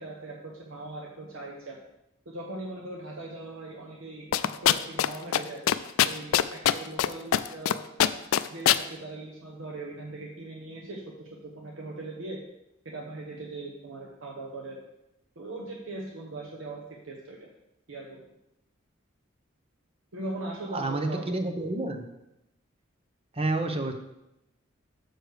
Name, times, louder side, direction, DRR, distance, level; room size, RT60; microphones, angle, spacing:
voice 1, 0.0-1.8 2.3-5.6 6.0-7.8 8.5-12.4 12.8-14.8 15.4-17.5 17.9-18.2 20.1-21.3, right 2 dB, 75° right, -1 dB, 1.0 m, -40 dB
sound 1, 4.3-5.1 5.3-5.4 5.7-7.1 7.3-7.7 8.0-8.8, left 11 dB, 80° left, 0.3 m, -21 dB
voice 2, 20.7-22.0 23.4-23.9, right 2 dB, 30° right, 6 dB, 0.8 m, -29 dB
6.6 x 6.4 x 4.8 m, 0.88 s
head